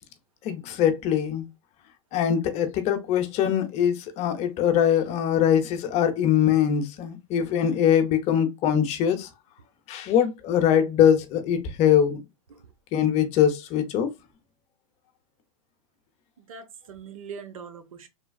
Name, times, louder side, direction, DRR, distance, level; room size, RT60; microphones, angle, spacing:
voice 1, 0.4-1.4 2.1-9.3 9.9-12.2 12.9-14.1, left 9 dB, 40° left, 0.7 m, -22 dB
voice 2, 16.4-18.1, right 6 dB, 80° right, 0.8 m, -42 dB
3.3 x 2.3 x 2.3 m
hypercardioid pair, 120°, 17 cm